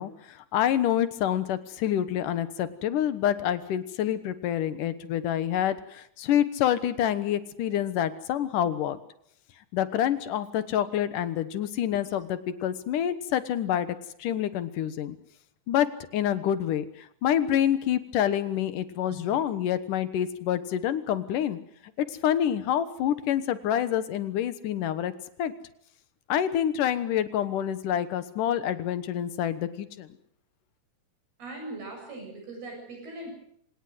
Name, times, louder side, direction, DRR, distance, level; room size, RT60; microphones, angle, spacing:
voice 1, 0.0-9.0 9.7-15.2 15.7-15.9 16.1-21.6 22.0-25.1 25.4-25.5 26.3-30.1, left 10 dB, 65° left, 13 dB, 2.6 m, -27 dB
voice 2, 31.4-33.3, right 2 dB, 85° right, 2 dB, 9.7 m, -40 dB
26.0 x 18.5 x 7.9 m, 0.68 s
omnidirectional pair, 4.3 m